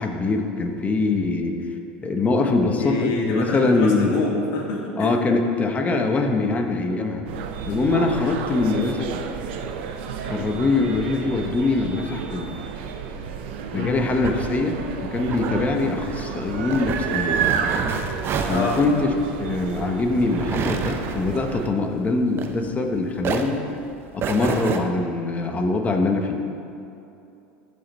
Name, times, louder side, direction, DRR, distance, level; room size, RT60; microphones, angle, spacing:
voice 1, 0.0-1.6 2.0-4.2 5.0-7.2 7.7-9.2 10.3-12.5 13.7-17.5 18.4-23.7 24.1-26.4, left 3 dB, 25° left, 3 dB, 1.2 m, -23 dB
voice 2, 2.8-5.1 13.7-14.0 18.5-18.8, left 3 dB, 65° left, -2 dB, 2.3 m, -26 dB
sound 1, 7.3-21.7, right 7 dB, 75° right, 0.7 m, -31 dB
sound 2, 13.8-22.9 23.2-24.8, right 5 dB, 40° right, 0.8 m, -30 dB
15.0 x 5.4 x 4.3 m, 2.7 s
hypercardioid pair, 95°, 6 cm